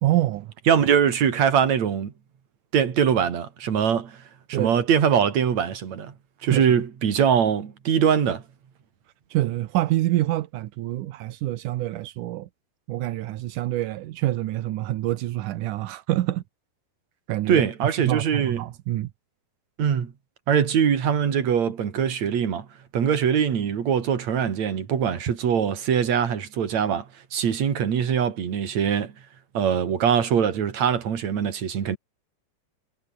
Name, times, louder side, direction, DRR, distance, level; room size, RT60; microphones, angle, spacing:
voice 1, 0.0-0.5 4.5-4.8 6.4-6.7 9.3-12.5 12.9-16.4 17.3-19.1, right 15 dB, 85° right, 2.5 m, -26 dB
voice 2, 0.7-2.1 2.7-4.2 4.5-6.1 6.4-8.4 17.5-18.6 19.8-20.1 20.5-22.7 22.9-29.1 29.5-32.0, right 8 dB, 60° right, 3.8 m, -22 dB
omnidirectional pair, 3.6 m